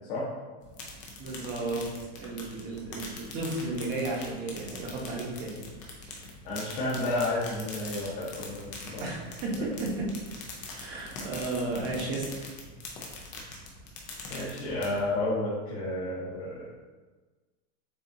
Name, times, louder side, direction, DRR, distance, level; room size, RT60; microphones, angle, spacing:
sound 1, 0.6-15.2, left 3 dB, 20° left, 0.5 m, -43 dB
voice 1, 1.2-1.8 2.2-5.6 9.0-10.1 10.7-12.4, right 2 dB, 30° right, -3 dB, 1.0 m, -33 dB
voice 2, 6.4-9.1 9.6-9.7 14.3-16.6, left 2 dB, 50° left, -8 dB, 1.2 m, -31 dB
6.9 x 2.5 x 2.7 m, 1.3 s
supercardioid pair, 165°, 36 cm